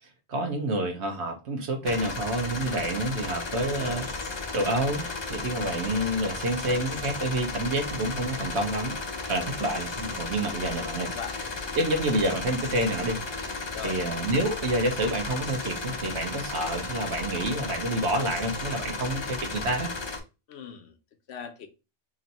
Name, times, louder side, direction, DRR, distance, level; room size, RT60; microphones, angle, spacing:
voice 1, 0.0-4.1 4.5-9.0 9.3-11.1 11.8-13.5 13.8-19.9, right 1 dB, 70° right, 1.1 m, -28 dB
sound 1, 1.8-20.2, left 3 dB, 35° left, 0.5 m, -34 dB
voice 2, 3.6-4.1 9.7-9.8 11.1-11.8 13.7-14.0 20.5-20.9 21.3-21.7, left 7 dB, 70° left, 0.9 m, -40 dB
3.1 x 2.6 x 4.1 m
omnidirectional pair, 1.2 m